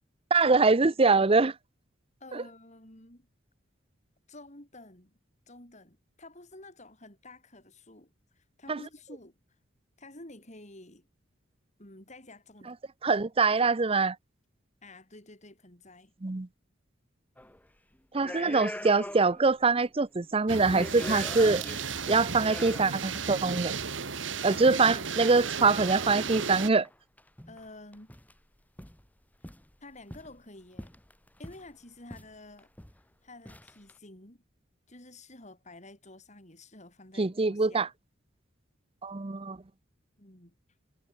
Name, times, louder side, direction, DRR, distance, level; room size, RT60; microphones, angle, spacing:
voice 1, 0.3-1.5 2.3-2.4 8.7-8.8 13.0-14.1 16.2-16.5 18.1-21.6 22.1-23.7 24.4-26.9 37.2-37.9 39.0-39.6, right 4 dB, 30° right, 0.6 m, -24 dB
voice 2, 2.2-3.3 4.3-5.2 5.5-9.4 10.0-11.1 11.8-12.8 14.8-16.1 24.5-25.2 27.5-28.1 29.8-30.9 31.4-32.7 33.2-34.4 34.9-37.9 40.2-40.5, left 2 dB, 35° left, 6.3 m, -50 dB
sound 1, 17.4-17.6 18.1-19.5 19.8-19.9 20.5-23.1 24.1-24.2 25.9-26.3 26.8-26.9 27.2-27.7 27.9-28.4 28.8-29.0 29.4-30.4 30.8-31.7 32.1-32.3 32.6-33.0 33.5-33.9, left 1 dB, 10° left, 2.0 m, -42 dB
sound 2, 20.5-26.7, right 6 dB, 70° right, 1.7 m, -34 dB
head